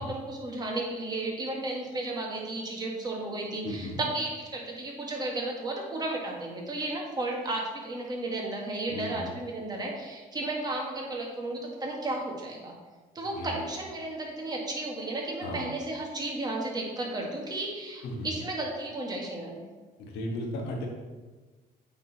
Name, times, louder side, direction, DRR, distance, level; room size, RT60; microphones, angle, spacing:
voice 1, 0.0-12.7 13.2-19.7, right 2 dB, 25° right, -1 dB, 1.7 m, -33 dB
voice 2, 3.6-4.0 8.9-9.3 13.3-13.7 15.4-15.7 18.0-18.3 20.0-20.9, left 1 dB, 85° left, 0 dB, 1.6 m, -35 dB
8.8 x 3.9 x 4.1 m, 1.3 s
cardioid pair, 110°, 17 cm